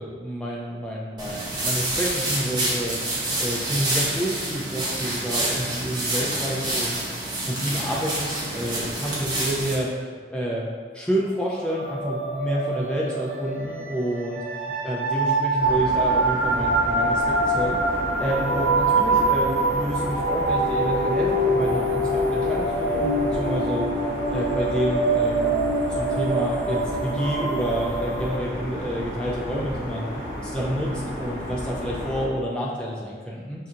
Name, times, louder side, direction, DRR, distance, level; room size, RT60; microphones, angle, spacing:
voice 1, 0.0-3.0 3.4-7.0 7.4-10.7 10.9-14.4 14.8-23.8 24.3-25.5 26.0-30.1 30.4-33.7, equal, 5° left, -5 dB, 0.4 m, -29 dB
sound 1, 1.2-9.8, right 1 dB, 25° right, 0.7 m, -27 dB
sound 2, 11.6-28.4, right 2 dB, 60° right, 0.6 m, -24 dB
sound 3, 15.6-32.3, equal, 80° left, 1.3 m, -33 dB
5.6 x 2.4 x 2.7 m, 1.5 s
head